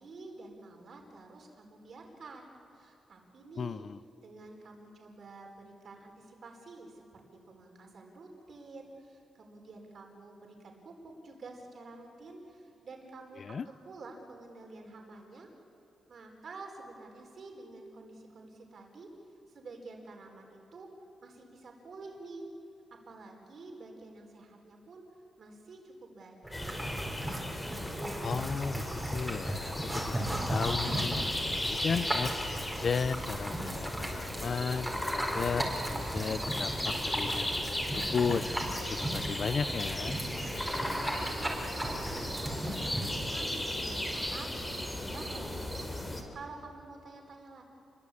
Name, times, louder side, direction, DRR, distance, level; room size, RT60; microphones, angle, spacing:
voice 1, 0.0-3.9 4.2-15.5 16.1-19.1 19.5-20.9 21.2-22.5 23.1-25.0 25.4-26.9 40.8-47.6, right 3 dB, 55° right, 2 dB, 4.6 m, -49 dB
voice 2, 3.6-4.0 13.4-13.7 28.2-28.8 29.1-32.3 32.8-37.7 37.9-38.4 38.9-40.2, left 5 dB, 45° left, 15 dB, 0.6 m, -34 dB
sound 1, 26.4-43.2, right 1 dB, 5° right, 4.5 m, -37 dB
sound 2, 26.5-46.2, left 1 dB, 15° left, 3.4 m, -36 dB
sound 3, 34.5-45.8, right 3 dB, 25° right, 3.4 m, -46 dB
28.5 x 22.5 x 8.5 m, 2.9 s
wide cardioid pair, 125°, 0 cm